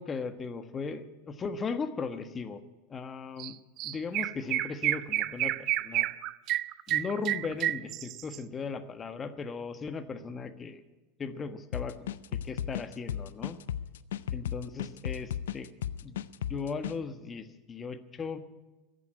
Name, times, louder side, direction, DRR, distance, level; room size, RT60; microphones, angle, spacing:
voice 1, 0.0-2.6 2.9-3.5 3.8-5.5 5.8-6.1 6.9-10.8 11.2-12.2 12.4-13.6 14.3-15.7 16.0-16.2 16.5-18.4, left 5 dB, 25° left, 10 dB, 1.3 m, -37 dB
Chirp tweet, 3.4-3.5 3.8-8.4, right 14 dB, 50° right, 0.5 m, -30 dB
sound 1, 11.7-17.0, left 10 dB, 80° left, 0.5 m, -35 dB
15.0 x 8.4 x 9.5 m, 1.1 s
hypercardioid pair, 100°, 0 cm